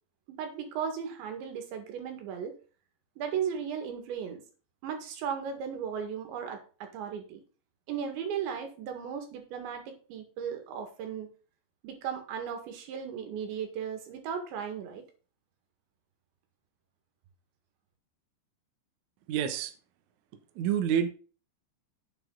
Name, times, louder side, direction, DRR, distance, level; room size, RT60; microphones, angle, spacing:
voice 1, 0.4-2.6 3.2-4.4 4.8-7.4 7.9-11.3 11.8-15.1, right 7 dB, 90° right, 4.3 m, -36 dB
voice 2, 19.3-19.7 20.6-21.1, right 9 dB, 70° right, 1.8 m, -27 dB
8.9 x 8.1 x 4.0 m
omnidirectional pair, 5.0 m